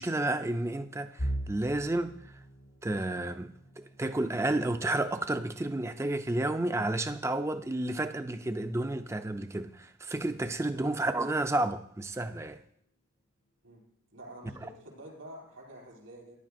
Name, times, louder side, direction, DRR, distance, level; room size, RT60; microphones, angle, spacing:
voice 1, 0.0-2.2 2.8-12.6, right 2 dB, 15° right, 0.3 m, -31 dB
sound 1, 1.2-13.0 13.4-13.7 14.1-14.3 15.1-15.6, right 1 dB, 85° left, 2.2 m, -45 dB
voice 2, 14.1-16.4, right 1 dB, 80° right, 4.9 m, -48 dB
14.5 x 10.5 x 2.6 m
head